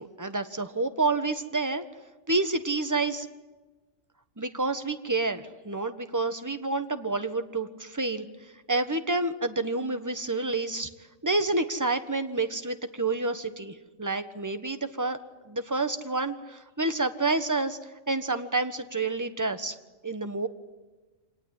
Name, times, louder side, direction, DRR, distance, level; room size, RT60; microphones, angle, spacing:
voice 1, 0.0-1.8 2.3-3.3 4.4-8.3 8.7-10.9 11.2-15.2 15.5-19.7 20.0-20.5, right 3 dB, 15° right, 8 dB, 1.3 m, -29 dB
26.0 x 19.0 x 9.7 m, 1.2 s
omnidirectional pair, 1.3 m